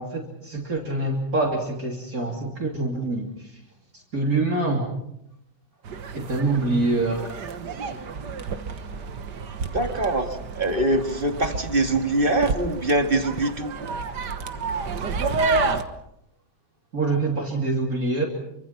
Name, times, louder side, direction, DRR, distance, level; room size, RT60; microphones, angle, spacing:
voice 1, 0.0-3.3 4.1-4.9 6.1-7.3 16.9-18.3, right 2 dB, 50° right, 0 dB, 3.5 m, -25 dB
sound 1, 5.8-15.8, right 4 dB, 70° right, 2.0 m, -30 dB
voice 2, 9.7-13.7, right 1 dB, 30° right, 6 dB, 2.1 m, -23 dB
27.5 x 25.0 x 5.9 m, 0.80 s
omnidirectional pair, 2.0 m